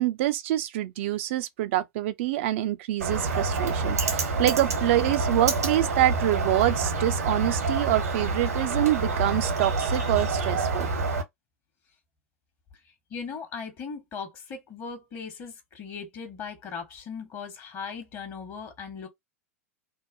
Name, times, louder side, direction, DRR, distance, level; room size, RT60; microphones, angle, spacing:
voice 1, 0.0-10.9, right 14 dB, 55° right, 0.4 m, -26 dB
Bird, 3.0-11.2, right 3 dB, 80° right, 1.0 m, -27 dB
voice 2, 12.8-19.1, left 5 dB, 40° left, 1.1 m, -38 dB
2.8 x 2.2 x 2.6 m
figure-of-eight pair, 90°, 8 cm